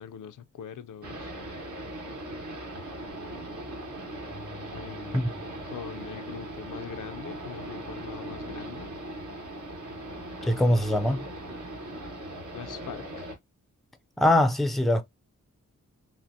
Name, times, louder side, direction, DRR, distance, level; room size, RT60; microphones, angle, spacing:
voice 1, 0.0-1.3 4.7-5.2 5.6-8.9 12.5-13.3, left 8 dB, 85° left, 0.5 m, -42 dB
sound 1, 1.0-13.3, right 1 dB, 75° right, 1.7 m, -39 dB
Keyboard (musical), 4.2-7.8, left 1 dB, 40° right, 1.0 m, -52 dB
voice 2, 10.4-11.3 14.2-15.0, left 1 dB, ahead, 0.4 m, -22 dB
5.8 x 2.0 x 2.7 m
wide cardioid pair, 150°, 30 cm